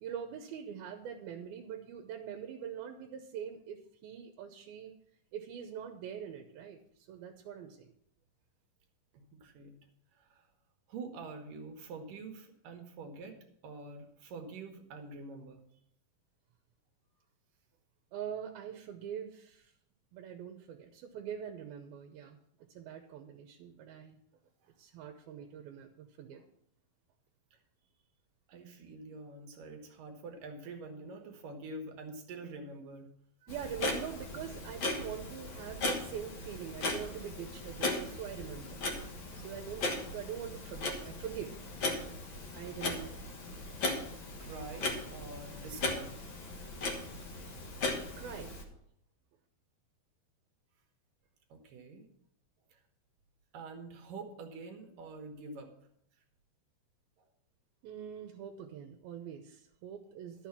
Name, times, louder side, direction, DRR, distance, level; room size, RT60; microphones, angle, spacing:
voice 1, 0.0-4.9 5.3-6.8 7.1-7.9 18.1-19.7 20.1-22.4 22.7-24.2 24.8-26.4 33.4-38.8 39.4-42.0 42.5-43.2 48.2-48.6 57.8-60.5, right 8 dB, 85° right, 5 dB, 2.8 m, -43 dB
voice 2, 9.1-9.8 10.2-10.5 10.9-13.4 13.6-15.6 28.5-33.1 43.9-46.1 51.5-52.1 52.7-52.8 53.5-55.7 57.2-57.3, right 3 dB, 70° right, 5 dB, 2.9 m, -46 dB
Clock, 33.5-48.6, left 2 dB, 55° left, 1.3 m, -38 dB
12.0 x 6.8 x 5.9 m, 0.72 s
omnidirectional pair, 4.2 m